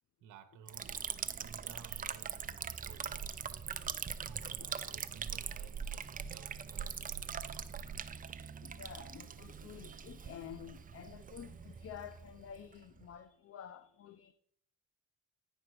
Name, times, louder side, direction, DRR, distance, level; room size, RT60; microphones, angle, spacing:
voice 1, 0.2-1.1 1.4-3.4 4.2-7.0, right 8 dB, 80° right, 0.8 m, -56 dB
Liquid, 0.7-13.1, right 7 dB, 30° right, 0.5 m, -42 dB
voice 2, 8.6-14.3, left 9 dB, 50° left, 0.5 m, -50 dB
9.7 x 5.2 x 4.7 m
cardioid pair, 90°, 30 cm